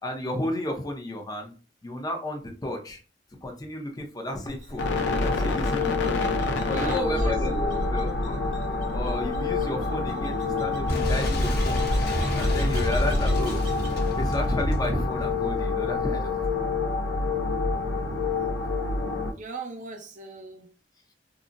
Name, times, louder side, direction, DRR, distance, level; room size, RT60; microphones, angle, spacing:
voice 1, 0.0-1.5 1.8-3.0 3.4-4.9 5.2-6.2 6.7-7.6 7.9-8.4 8.9-11.8 12.3-13.6 14.2-16.6, left 1 dB, 20° left, 0.6 m, -32 dB
sound 1, 4.5-14.0, equal, 75° right, 0.8 m, -38 dB
sound 2, 4.8-19.3, left 3 dB, 90° left, 0.5 m, -27 dB
voice 2, 6.6-8.0 19.3-20.7, right 2 dB, 45° right, 0.6 m, -37 dB
Boom, 10.9-16.4, equal, 60° left, 0.8 m, -28 dB
3.7 x 2.0 x 2.5 m
head